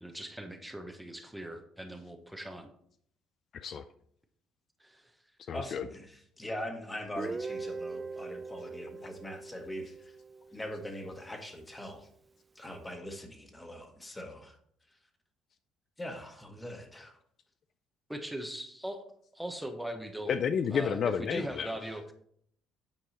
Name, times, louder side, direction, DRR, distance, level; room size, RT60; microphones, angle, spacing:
voice 1, 0.0-2.7 4.8-5.2 11.8-11.9 18.1-19.1 19.3-20.3 20.7-22.1, right 1 dB, 5° right, 6 dB, 1.0 m, -40 dB
voice 2, 3.5-3.9 5.5-5.9 20.3-21.7, left 7 dB, 55° left, 11 dB, 0.4 m, -31 dB
voice 3, 5.5-10.2 10.5-12.1 12.5-14.5 16.0-17.2, left 1 dB, 15° left, 5 dB, 1.6 m, -42 dB
Guitar, 7.2-11.0, right 3 dB, 25° right, 0.4 m, -41 dB
9.1 x 4.6 x 4.2 m, 0.66 s
supercardioid pair, 85°, 0 cm